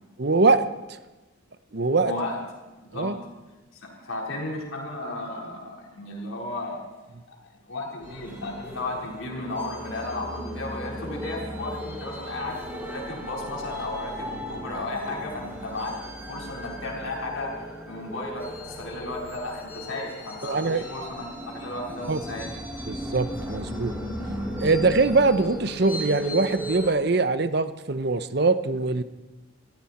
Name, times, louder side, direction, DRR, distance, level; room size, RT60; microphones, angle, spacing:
voice 1, 0.2-0.7 1.7-2.1 2.9-3.2 20.4-20.8 22.1-22.2 22.9-23.9 24.6-29.0, right 3 dB, 50° right, 12 dB, 0.7 m, -22 dB
voice 2, 2.0-2.4 2.9-3.2 3.7-6.8 7.3-7.4 7.7-16.0 16.3-22.5 22.7-22.8, left 2 dB, 80° left, -2 dB, 4.2 m, -34 dB
sound 1, 8.0-26.9, equal, 10° right, 2.6 m, -36 dB
21.0 x 14.5 x 4.3 m, 1.1 s
head